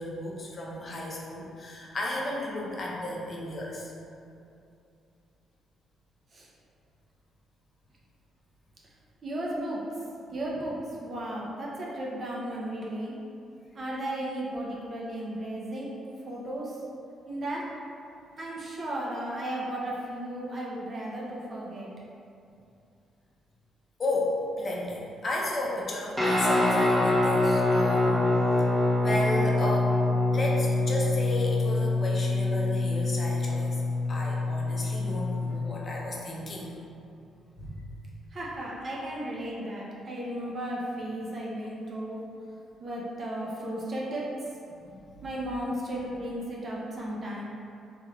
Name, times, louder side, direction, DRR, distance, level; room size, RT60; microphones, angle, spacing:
voice 1, 0.0-3.9 10.3-10.4 24.0-28.3 29.0-29.9 30.3-33.8 34.1-36.8 37.6-37.8 44.8-45.5, left 1 dB, 40° left, -3 dB, 0.6 m, -33 dB
voice 2, 9.2-9.8 10.3-13.1 13.7-15.9 16.2-16.8 17.3-17.6 18.4-21.9 38.3-42.2 42.8-44.2 45.2-47.4, right 1 dB, 45° right, -4 dB, 0.6 m, -34 dB
Guitar, 26.2-35.5, left 2 dB, 5° right, 0.6 m, -25 dB
3.3 x 3.1 x 2.3 m, 2.6 s
cardioid pair, 90°, 0 cm